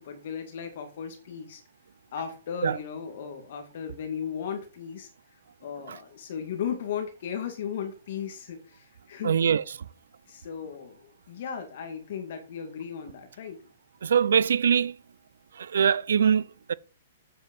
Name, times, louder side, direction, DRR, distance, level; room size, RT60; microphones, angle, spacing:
voice 1, 0.0-1.6 2.1-5.1 5.6-9.4 10.3-13.6, left 7 dB, 45° left, 2.2 m, -36 dB
voice 2, 9.2-9.6 14.0-15.0 15.6-16.7, right 7 dB, 80° right, 0.7 m, -23 dB
9.0 x 8.1 x 5.5 m
hypercardioid pair, 180°, 0 cm